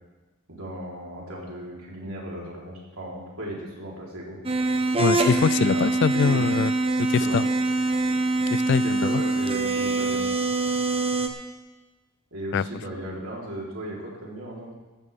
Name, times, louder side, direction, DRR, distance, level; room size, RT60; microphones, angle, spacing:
voice 1, 0.5-4.4 5.7-6.6 7.2-7.4 8.8-10.3 12.3-14.7, right 1 dB, 85° right, -4 dB, 3.8 m, -36 dB
sound 1, 4.4-11.3, right 2 dB, 25° right, 1.0 m, -24 dB
voice 2, 5.0-6.7 7.1-7.4 8.5-9.2 12.5-12.6, left 6 dB, 55° left, 19 dB, 0.3 m, -23 dB
15.5 x 13.0 x 3.6 m, 1.2 s
head